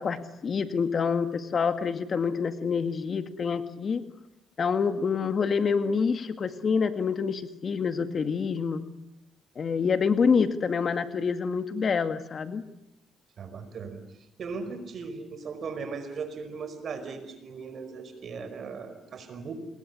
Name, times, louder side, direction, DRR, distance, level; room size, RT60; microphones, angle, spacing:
voice 1, 0.0-4.0 4.6-8.8 9.6-12.6, left 5 dB, 45° left, 10 dB, 2.1 m, -27 dB
voice 2, 13.4-14.0 14.4-19.5, right 5 dB, 55° right, 11 dB, 5.2 m, -38 dB
28.5 x 21.5 x 9.7 m, 0.86 s
cardioid pair, 90°, 0 cm